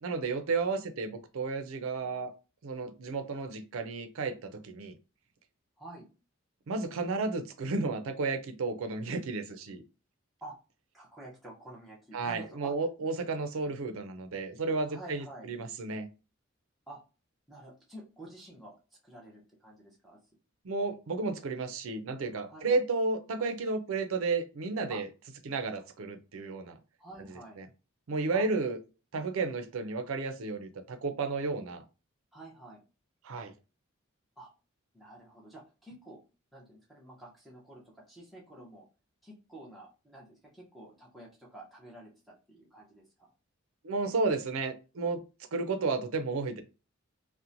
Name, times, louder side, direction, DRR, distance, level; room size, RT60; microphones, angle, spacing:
voice 1, 0.0-2.3 2.6-4.9 6.7-9.8 12.1-16.1 20.6-25.1 25.5-26.8 27.6-27.7 28.1-28.8 29.1-31.8 33.2-33.5 43.8-45.2 45.5-46.6, right 3 dB, 80° right, 0.5 m, -32 dB
voice 2, 10.9-12.7 14.9-15.5 16.9-17.0 17.5-18.8 19.0-20.2 20.9-21.0 22.5-22.8 24.9-25.0 25.8-25.9 27.0-27.6 28.3-28.5 32.3-32.8 34.4-34.5 34.9-36.2 36.5-38.8 39.2-43.0, right 1 dB, ahead, 0.6 m, -49 dB
2.8 x 2.1 x 2.5 m
head